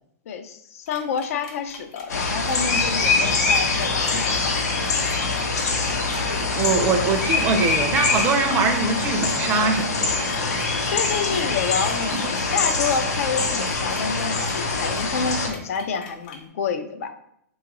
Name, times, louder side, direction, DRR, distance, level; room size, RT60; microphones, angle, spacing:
voice 1, 0.3-4.7 6.2-6.6 10.9-17.1, left 6 dB, 60° left, 7 dB, 0.4 m, -28 dB
sound 1, 0.9-16.4, left 4 dB, 45° left, 0.9 m, -43 dB
sound 2, 2.1-15.5, left 3 dB, 80° left, 0.8 m, -24 dB
voice 2, 6.4-10.6 12.1-12.2, right 4 dB, 25° right, 5 dB, 0.5 m, -23 dB
3.8 x 2.4 x 3.0 m, 0.72 s
hypercardioid pair, 135°, 9 cm